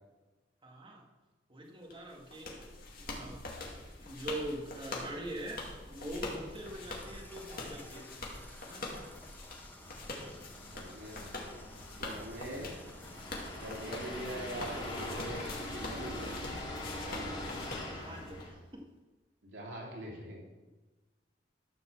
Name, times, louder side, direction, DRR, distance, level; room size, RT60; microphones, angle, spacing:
voice 1, 0.6-1.0 1.5-2.5 3.1-3.5 4.0-8.9 17.8-18.8, right 1 dB, 30° right, -1 dB, 2.0 m, -43 dB
sound 1, 1.9-18.5, left 2 dB, 55° left, 2.2 m, -44 dB
Water tap faucet / Bathtub (filling or washing), 5.4-18.2, left 1 dB, 10° left, 1.3 m, -55 dB
sound 2, 9.8-18.5, left 1 dB, 25° left, 2.7 m, -43 dB
voice 2, 10.7-11.3 12.0-12.7 13.6-16.3 16.9-17.3 19.4-20.4, right 1 dB, 85° right, -2 dB, 2.9 m, -43 dB
13.0 x 5.5 x 7.2 m, 1.2 s
head